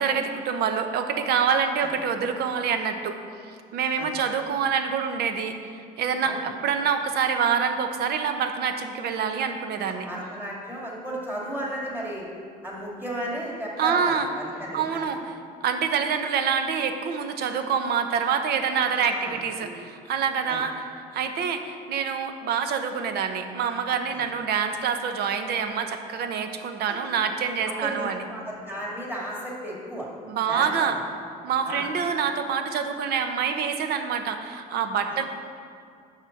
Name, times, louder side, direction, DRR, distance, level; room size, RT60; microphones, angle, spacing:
voice 1, 0.0-3.2 3.7-10.1 13.8-14.3 14.7-15.3 15.6-20.8 21.1-28.2 30.3-31.0 31.4-35.2, right 6 dB, 70° right, 7 dB, 0.8 m, -26 dB
voice 2, 9.8-12.3 12.6-15.0 18.9-19.7 20.5-20.6 24.1-24.2 26.9-27.0 27.7-30.1 30.5-30.9 31.6-31.9 35.1-35.2, right 1 dB, 10° right, -4 dB, 2.3 m, -34 dB
6.7 x 5.8 x 5.8 m, 2.3 s
cardioid pair, 110°, 17 cm